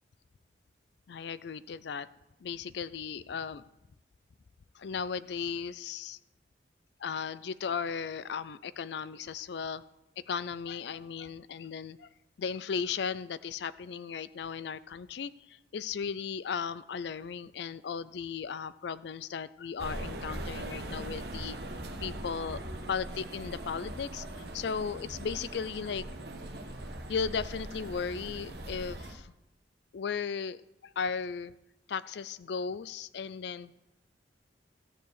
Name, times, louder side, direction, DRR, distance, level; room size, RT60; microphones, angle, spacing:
voice 1, 1.1-2.1 2.4-3.6 4.7-6.2 7.0-9.8 10.2-12.1 12.4-21.6 22.0-22.6 22.9-26.1 27.1-29.3 29.9-31.5 31.9-33.7, left 6 dB, 65° left, 16 dB, 0.4 m, -36 dB
sound 1, 19.8-29.2, right 1 dB, 60° right, 1.2 m, -41 dB
14.0 x 4.8 x 8.0 m, 0.93 s
head